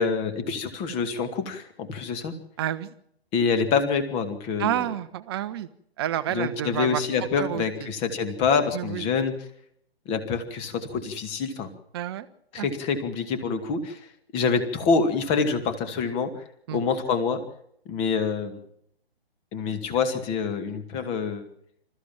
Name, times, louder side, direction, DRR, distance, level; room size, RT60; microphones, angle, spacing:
voice 1, 0.0-2.3 3.3-4.9 6.3-9.3 10.1-11.7 12.5-14.0 14.3-16.3 16.7-17.4 17.9-18.6 19.5-21.5, left 5 dB, 20° left, 9 dB, 2.2 m, -26 dB
voice 2, 2.6-2.9 4.6-5.7 6.0-7.0 7.4-7.9 8.7-9.0 11.9-12.3 12.6-12.7 16.7-16.8, right 12 dB, 25° right, 13 dB, 1.1 m, -29 dB
27.0 x 14.5 x 7.4 m, 0.71 s
figure-of-eight pair, 130°, 31 cm